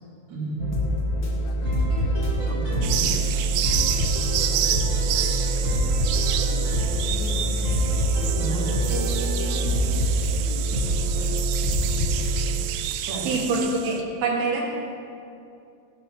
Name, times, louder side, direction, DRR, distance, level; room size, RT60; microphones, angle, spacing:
voice 1, 0.3-0.7 2.5-3.1 8.4-10.1 13.0-13.3, right 2 dB, 50° right, -6 dB, 4.1 m, -32 dB
sound 1, 0.6-12.5, right 1 dB, 40° left, 1.7 m, -24 dB
voice 2, 1.4-2.5 5.8-6.5 7.3-7.6 8.0-8.3, left 9 dB, 80° left, 1 dB, 2.3 m, -46 dB
sound 2, 1.6-3.3 3.6-7.3 7.6-9.6, left 1 dB, 25° right, 3.3 m, -38 dB
sound 3, 2.8-14.0, right 11 dB, 90° right, 2.7 m, -29 dB
voice 3, 13.3-14.6, right 3 dB, 75° right, -1 dB, 3.5 m, -25 dB
16.0 x 6.7 x 5.9 m, 2.5 s
omnidirectional pair, 4.5 m